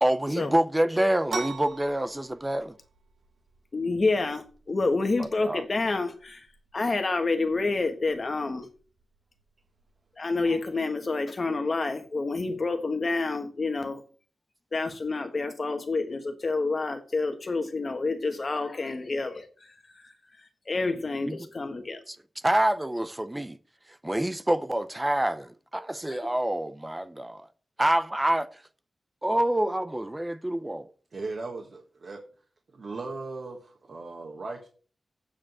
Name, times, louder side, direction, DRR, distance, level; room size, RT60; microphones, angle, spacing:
voice 1, 0.0-2.8 5.2-5.6 21.3-21.4 22.1-22.2 22.4-23.6 23.9-27.5 27.8-28.6 29.2-30.9, right 1 dB, 10° right, 0.6 m, -27 dB
sound 1, 1.3-10.7, right 4 dB, 90° right, 1.4 m, -44 dB
voice 2, 3.7-6.5 6.7-8.7 10.2-14.0 14.7-20.1 20.7-22.0 26.1-26.3, left 3 dB, 35° left, 1.4 m, -28 dB
voice 3, 31.1-32.2 32.7-34.7, right 3 dB, 50° right, 1.6 m, -38 dB
8.6 x 5.1 x 7.5 m
wide cardioid pair, 165°, 0 cm